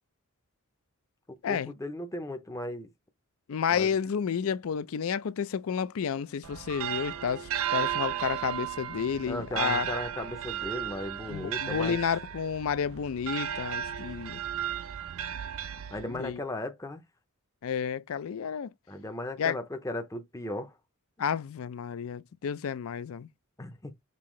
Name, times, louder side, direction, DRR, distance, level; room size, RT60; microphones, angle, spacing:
voice 1, 1.3-2.9 3.7-4.0 9.3-12.0 15.9-17.0 18.9-20.7 23.6-23.9, left 1 dB, 15° left, 0.5 m, -36 dB
voice 2, 3.5-9.9 11.3-14.4 16.0-16.4 17.6-18.7 19.4-19.6 21.2-23.3, left 7 dB, 70° left, 0.4 m, -31 dB
sound 1, 6.4-16.3, right 9 dB, 70° right, 0.4 m, -34 dB
5.4 x 2.7 x 3.1 m
head